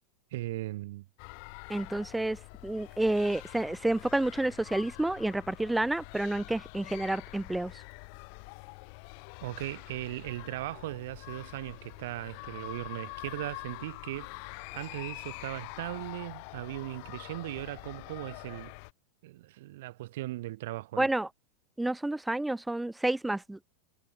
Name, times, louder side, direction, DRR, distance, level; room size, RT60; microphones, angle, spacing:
voice 1, 0.3-1.1 9.4-14.3 14.7-18.7 19.2-21.1, right 17 dB, 75° right, 2.5 m, -38 dB
sound 1, 1.2-18.9, left 40 dB or more, 55° left, 0.9 m, -45 dB
voice 2, 1.7-2.4 2.6-7.7 21.0-21.3 21.8-23.6, right 2 dB, 5° right, 0.5 m, -29 dB
supercardioid pair, 135°, 0 cm